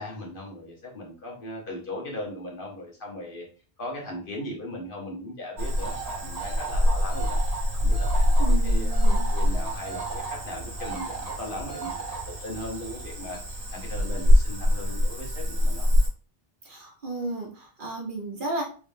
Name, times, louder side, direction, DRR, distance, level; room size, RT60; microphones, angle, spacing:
voice 1, 0.0-3.5 3.8-7.4 7.7-15.9, left 1 dB, 60° left, -2 dB, 1.2 m, -38 dB
Cricket / Frog, 5.6-16.1, equal, 85° right, 1.4 m, -24 dB
voice 2, 8.4-9.3 16.6-18.6, right 2 dB, 55° right, -1 dB, 1.1 m, -33 dB
3.5 x 2.9 x 2.6 m, 0.38 s
omnidirectional pair, 1.1 m